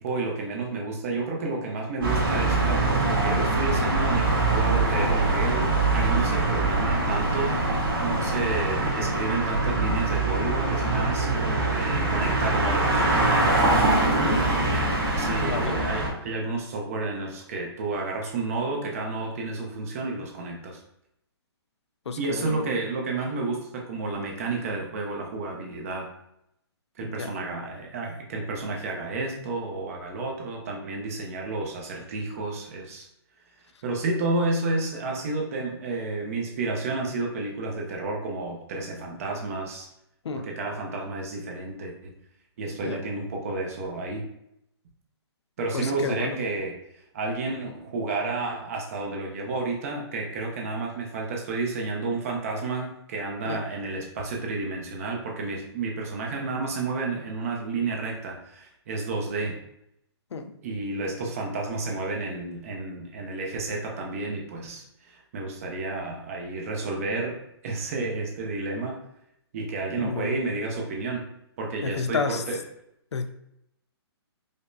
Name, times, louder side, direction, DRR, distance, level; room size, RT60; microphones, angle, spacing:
voice 1, 0.0-7.6 8.0-13.1 15.1-20.8 22.2-26.1 27.0-33.1 33.8-39.9 40.3-42.1 42.6-44.3 45.6-46.7 47.1-59.6 60.6-69.0 69.5-71.3 71.6-72.6, right 3 dB, 35° right, 0 dB, 0.6 m, -31 dB
sound 1, 2.0-16.1, right 2 dB, 55° right, 1.2 m, -23 dB
voice 2, 15.4-15.8 22.1-22.7 27.2-27.3 40.2-40.5 42.8-43.0 45.7-46.4 53.5-53.6 60.3-60.6 70.0-70.4 71.8-72.4 73.1-73.3, left 5 dB, 90° left, 7 dB, 0.5 m, -31 dB
4.9 x 2.1 x 2.6 m, 0.78 s
hypercardioid pair, 160°, 14 cm